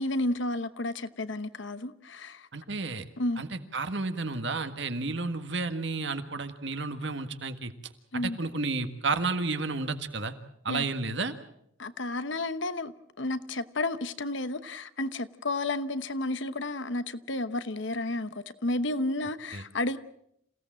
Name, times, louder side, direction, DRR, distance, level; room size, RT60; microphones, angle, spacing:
voice 1, 0.0-2.5 3.2-3.4 8.1-8.4 10.7-10.8 11.8-20.0, left 2 dB, 65° left, 1.0 m, -32 dB
voice 2, 2.5-3.0 3.4-7.7 8.1-10.3 10.6-11.3 19.5-19.6, right 3 dB, 60° right, 1.7 m, -31 dB
28.0 x 17.0 x 7.5 m
head